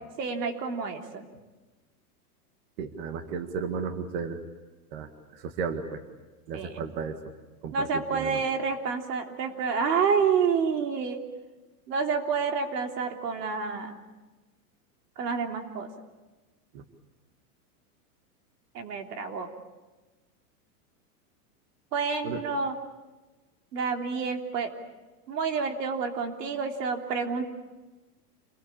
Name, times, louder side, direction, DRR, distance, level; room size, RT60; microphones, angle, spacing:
voice 1, 0.2-1.3 6.5-6.8 7.7-11.2 11.9-14.0 15.2-15.9 18.7-19.5 21.9-22.7 23.7-24.7 25.3-27.4, right 5 dB, 90° right, 4 dB, 3.5 m, -28 dB
voice 2, 2.8-4.4 4.9-6.0 6.5-7.2 7.6-8.4 16.7-16.8 22.2-22.4, right 5 dB, 40° right, 8 dB, 1.9 m, -34 dB
27.5 x 21.5 x 8.7 m, 1.2 s
supercardioid pair, 175°, 47 cm